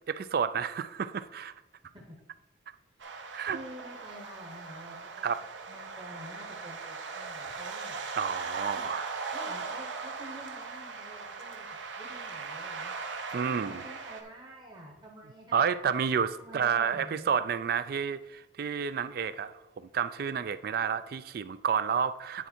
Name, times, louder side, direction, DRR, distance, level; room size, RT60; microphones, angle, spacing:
voice 1, 0.1-1.5 3.3-3.6 5.2-5.4 8.2-9.1 13.3-13.8 15.5-22.5, right 7 dB, 50° right, 14 dB, 0.3 m, -30 dB
sound 1, 3.0-14.2, right 4 dB, 75° right, 0.9 m, -39 dB
voice 2, 3.4-5.3 5.7-8.0 8.5-8.9 9.3-11.7 12.0-13.0 13.3-15.6 16.4-17.4, right 1 dB, 20° right, -2 dB, 0.9 m, -48 dB
9.5 x 4.5 x 4.3 m, 1.0 s
head